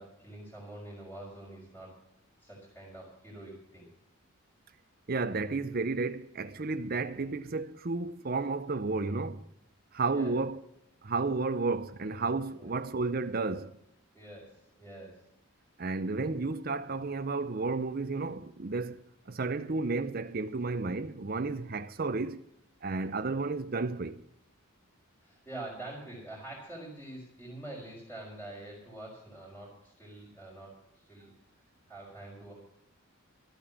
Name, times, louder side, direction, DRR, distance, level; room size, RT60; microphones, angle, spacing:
voice 1, 0.0-2.0 2.4-3.9 10.1-10.4 12.5-12.7 14.1-15.3 25.2-31.3 31.9-32.5, right 1 dB, 10° left, 4.7 m, -46 dB
voice 2, 5.1-9.4 9.9-10.6 11.0-13.7 15.8-22.4 22.8-24.2, right 3 dB, 45° right, 0.6 m, -32 dB
13.0 x 8.7 x 7.2 m
head